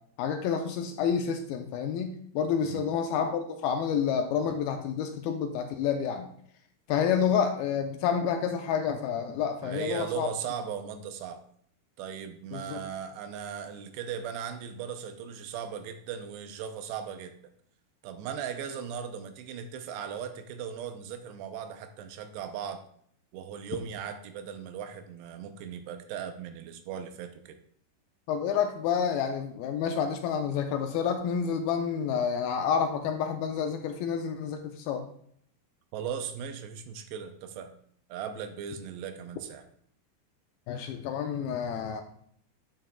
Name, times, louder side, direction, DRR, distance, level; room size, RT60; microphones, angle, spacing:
voice 1, 0.2-6.3 6.9-10.3 12.5-12.8 28.3-35.0 40.7-42.0, left 7 dB, 80° left, 5 dB, 2.3 m, -29 dB
voice 2, 9.6-11.4 12.0-17.3 18.0-22.8 23.3-27.6 35.9-37.7 38.1-39.6, right 8 dB, 90° right, 8 dB, 2.9 m, -38 dB
10.5 x 7.6 x 2.3 m, 0.63 s
omnidirectional pair, 4.7 m